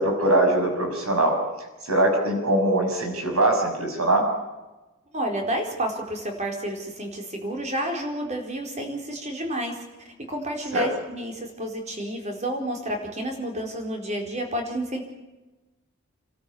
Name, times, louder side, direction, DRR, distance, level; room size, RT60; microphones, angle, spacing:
voice 1, 0.0-1.3 1.8-4.2 10.7-10.9, right 1 dB, 80° right, 3 dB, 6.4 m, -22 dB
voice 2, 5.1-9.8 10.3-15.0, right 1 dB, 30° right, 2 dB, 4.5 m, -30 dB
29.0 x 13.5 x 8.6 m, 1.1 s
head